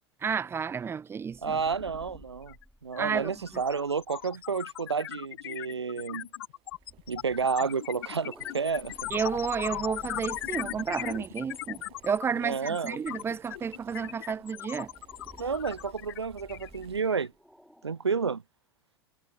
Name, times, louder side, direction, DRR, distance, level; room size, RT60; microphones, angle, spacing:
voice 1, 0.2-1.6 3.0-3.3 9.1-14.9, right 6 dB, 15° right, 0.7 m, -31 dB
sound 1, 1.3-5.5 6.7-12.7 13.2-13.3 14.8-18.3, equal, ahead, 4.2 m, -54 dB
voice 2, 1.4-2.5 2.8-6.3 7.1-9.1 12.4-13.0 15.4-17.3 17.8-18.4, right 5 dB, 85° right, 0.4 m, -30 dB
sound 2, 2.5-2.6 2.9-17.3, left 14 dB, 60° left, 0.9 m, -39 dB
Boiling, 6.1-17.4, right 18 dB, 40° right, 5.6 m, -57 dB
figure-of-eight pair, 85°, 14 cm